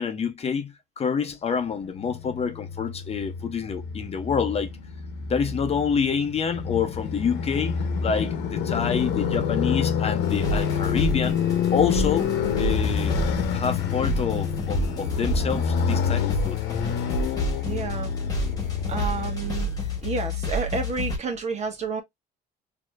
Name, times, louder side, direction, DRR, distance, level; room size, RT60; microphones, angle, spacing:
voice 1, 0.0-4.7 5.2-11.4 11.7-12.3 12.6-13.2 13.5-16.6, left 6 dB, 35° left, 0.8 m, -27 dB
Motorcycle, 1.9-20.1, left 7 dB, 85° left, 0.9 m, -28 dB
sound 1, 10.2-21.2, left 1 dB, 20° left, 1.7 m, -29 dB
voice 2, 17.6-18.1 18.9-19.7 20.0-22.0, right 4 dB, 40° right, 1.3 m, -30 dB
4.3 x 2.8 x 2.3 m
cardioid pair, 110°, 17 cm